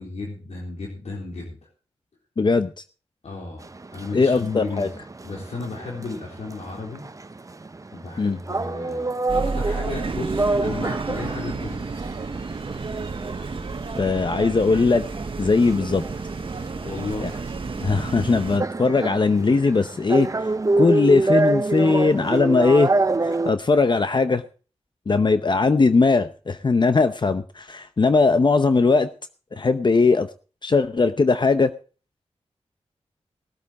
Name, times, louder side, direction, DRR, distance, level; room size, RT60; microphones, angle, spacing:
voice 1, 0.0-1.7 3.2-3.7 3.9-4.9 5.2-7.1 7.9-12.0 16.8-17.4, left 3 dB, 80° left, -2 dB, 3.7 m, -34 dB
voice 2, 2.4-2.7 4.1-4.9 8.2-8.4 14.0-15.0 15.4-16.0 17.2-17.3 17.8-20.3 20.8-22.9 23.2-24.4 25.1-29.1 29.5-30.3 30.6-31.7, left 4 dB, 45° left, 10 dB, 0.8 m, -19 dB
sound 1, 3.6-23.5, right 2 dB, 30° right, 0.8 m, -27 dB
sound 2, 9.3-18.6, right 4 dB, 50° right, 1.1 m, -31 dB
19.0 x 8.4 x 4.1 m, 0.37 s
wide cardioid pair, 65°, 11 cm